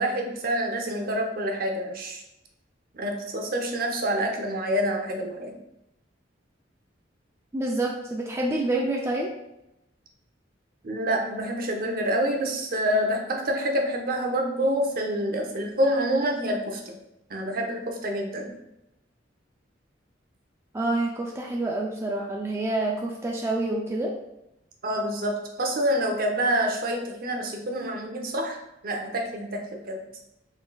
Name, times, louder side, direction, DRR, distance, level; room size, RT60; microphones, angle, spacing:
voice 1, 0.0-2.2 2.9-5.6 10.8-17.0 17.3-18.6 24.8-30.0, equal, 50° right, 2 dB, 0.7 m, -27 dB
voice 2, 7.5-9.3 20.7-24.1, right 2 dB, 15° right, -1 dB, 0.3 m, -27 dB
3.9 x 3.8 x 2.3 m, 0.87 s
head